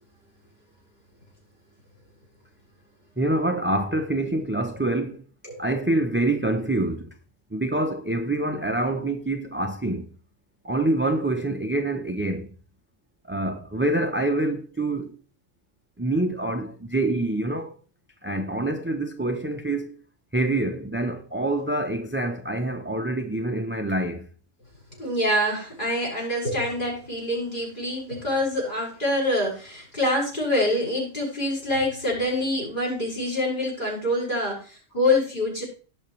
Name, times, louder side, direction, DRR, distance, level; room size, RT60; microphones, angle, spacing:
voice 1, 3.2-5.2 5.6-7.1 7.5-10.1 10.6-12.5 13.2-15.2 16.0-17.7 18.2-19.9 20.3-24.3, right 2 dB, 10° right, 0.6 m, -26 dB
voice 2, 25.0-35.6, left 1 dB, 35° left, 6.1 m, -25 dB
18.0 x 6.4 x 3.2 m
omnidirectional pair, 1.4 m